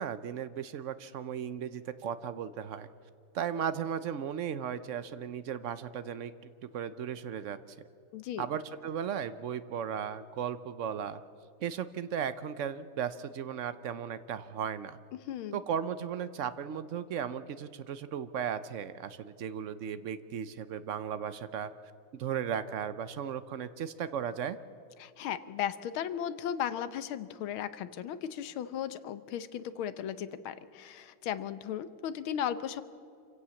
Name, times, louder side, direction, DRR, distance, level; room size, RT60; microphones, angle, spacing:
voice 1, 0.0-2.9 3.3-6.3 6.7-7.6 8.4-11.2 11.6-15.0 15.5-21.7 22.2-24.6, right 8 dB, 80° right, 13 dB, 0.6 m, -36 dB
voice 2, 8.1-8.5 15.1-15.6 25.0-32.8, left 9 dB, 90° left, 14 dB, 1.7 m, -36 dB
27.0 x 16.5 x 7.1 m, 2.5 s
omnidirectional pair, 2.2 m